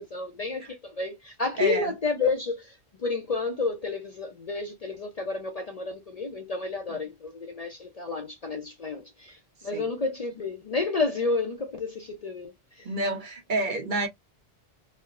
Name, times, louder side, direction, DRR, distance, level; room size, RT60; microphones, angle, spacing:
voice 1, 0.0-12.9, left 3 dB, 50° left, 0.5 m, -31 dB
voice 2, 1.6-1.9 9.7-9.9 12.8-14.1, right 2 dB, 50° right, 1.0 m, -28 dB
4.2 x 2.0 x 2.4 m
omnidirectional pair, 1.1 m